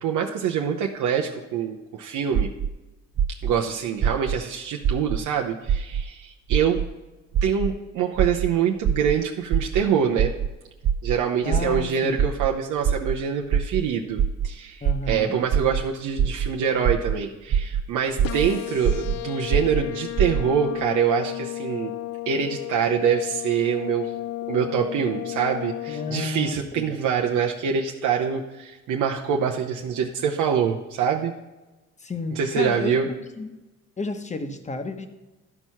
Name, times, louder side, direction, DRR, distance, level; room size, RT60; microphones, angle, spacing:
voice 1, 0.0-2.5 3.4-6.8 7.4-10.4 11.0-21.9 22.3-24.1 24.5-31.3 32.3-33.1, right 7 dB, 85° right, 1 dB, 0.8 m, -25 dB
sound 1, 2.3-2.7 3.2-3.5 4.0-4.4 4.8-5.2 5.7-6.0 6.5-6.8 7.3-7.7 8.2-8.5 8.8-9.1 9.5-9.8 10.2-10.5 10.8-11.1 11.5-11.8 12.2-12.5 12.8-13.1 13.5-13.8 14.2-14.5 14.8-15.1 15.5-15.8 16.2-16.5 16.8-17.1 17.5-17.8 18.2-18.5 18.8-19.1 19.5-19.8 20.2-20.4, right 8 dB, 45° right, 0.4 m, -22 dB
voice 2, 11.4-12.3 14.8-15.4 25.9-26.9 32.0-33.0 33.4-33.5 34.0-35.1, left 3 dB, 25° left, 7 dB, 1.0 m, -31 dB
sound 2, 18.2-26.2, left 16 dB, 55° left, 0.5 m, -33 dB
12.0 x 4.6 x 5.6 m, 1.1 s
cardioid pair, 90°, 30 cm